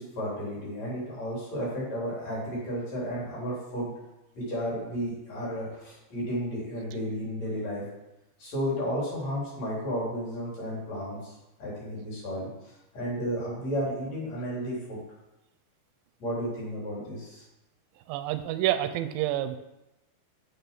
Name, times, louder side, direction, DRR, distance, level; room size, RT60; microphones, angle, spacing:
voice 1, 0.0-3.9 4.4-7.8 8.4-11.2 11.6-12.5 12.9-15.0 16.2-17.4, equal, 40° left, -6 dB, 4.1 m, -33 dB
voice 2, 18.1-19.6, right 13 dB, 90° right, 10 dB, 2.8 m, -28 dB
7.2 x 7.0 x 5.9 m, 0.96 s
omnidirectional pair, 4.9 m